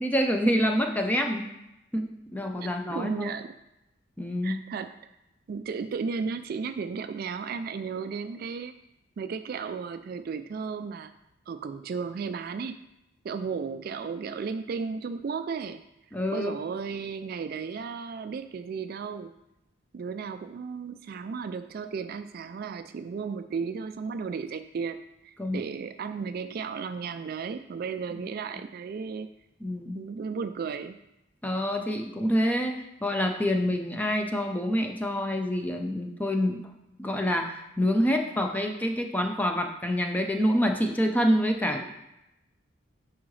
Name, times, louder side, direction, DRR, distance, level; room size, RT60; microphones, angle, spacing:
voice 1, 0.0-1.5 1.9-3.3 4.2-4.6 16.1-16.5 25.4-25.6 28.1-28.2 29.6-30.0 31.4-36.6 37.0-41.8, equal, 10° left, 4 dB, 0.6 m, -27 dB
voice 2, 2.6-3.6 4.4-4.9 5.5-8.7 9.2-11.1 11.5-12.8 13.2-15.8 16.3-19.3 19.9-29.3 29.9-31.0, right 5 dB, 50° right, 10 dB, 0.3 m, -34 dB
10.0 x 4.7 x 3.2 m, 0.89 s
head